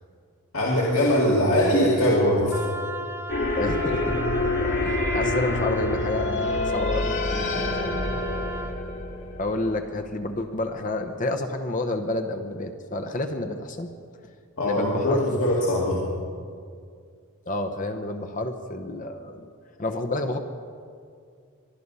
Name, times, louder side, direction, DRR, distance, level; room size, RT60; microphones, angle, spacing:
voice 1, 0.5-2.6 14.6-16.0, equal, 75° left, -4 dB, 2.3 m, -21 dB
Wind instrument woodwind instrument, 2.5-8.8, right 2 dB, 10° right, 0.5 m, -37 dB
sound 1, 3.3-10.1, left 2 dB, 55° left, 2.3 m, -27 dB
voice 2, 3.6-4.2 4.8-8.2 9.4-13.9 14.6-15.3 17.5-19.4 19.8-20.4, left 2 dB, 35° left, 6 dB, 0.9 m, -30 dB
23.5 x 11.0 x 5.5 m, 2.2 s
head